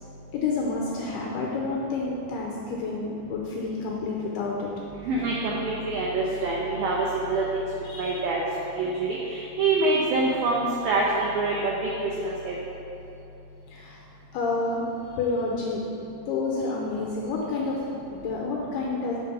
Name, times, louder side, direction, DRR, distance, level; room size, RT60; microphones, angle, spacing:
voice 1, 0.3-4.8 7.8-8.2 13.7-14.0 14.3-14.8 15.2-15.8 16.3-19.2, left 3 dB, 80° left, -2 dB, 2.3 m, -29 dB
voice 2, 5.1-7.6 8.0-8.4 8.7-11.7 12.2-12.6, right 3 dB, 90° right, -3 dB, 2.0 m, -25 dB
7.5 x 7.2 x 5.6 m, 2.8 s
omnidirectional pair, 5.4 m